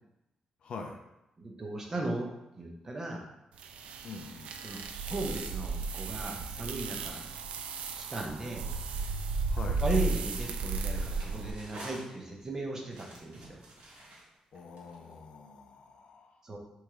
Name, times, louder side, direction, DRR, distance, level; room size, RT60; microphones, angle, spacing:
voice 1, 0.6-1.0 4.0-4.6 9.5-9.8 14.5-16.4, left 4 dB, 55° left, 3 dB, 0.5 m, -44 dB
voice 2, 1.4-2.3 2.5-3.3 4.6-7.3 8.0-8.7 9.8-13.6 16.4-16.6, right 2 dB, 25° right, 1 dB, 0.6 m, -36 dB
sound 1, 3.6-11.5, right 4 dB, 75° right, 0.3 m, -34 dB
sound 2, 10.0-12.5 12.9-15.1, right 1 dB, 60° right, 1.1 m, -49 dB
3.4 x 3.1 x 4.7 m, 0.89 s
wide cardioid pair, 170°, 2 cm